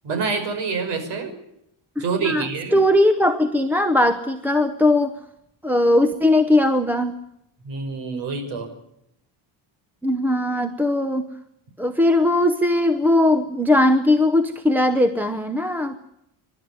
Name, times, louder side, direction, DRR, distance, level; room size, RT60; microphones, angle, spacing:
voice 1, 0.0-1.3 2.0-2.8 7.6-8.7, right 4 dB, 65° right, 7 dB, 5.9 m, -26 dB
voice 2, 2.7-5.2 5.6-7.2 10.0-11.3 11.8-16.0, left 1 dB, 5° right, 9 dB, 0.8 m, -19 dB
28.5 x 12.5 x 9.5 m, 0.79 s
cardioid pair, 170°, 46 cm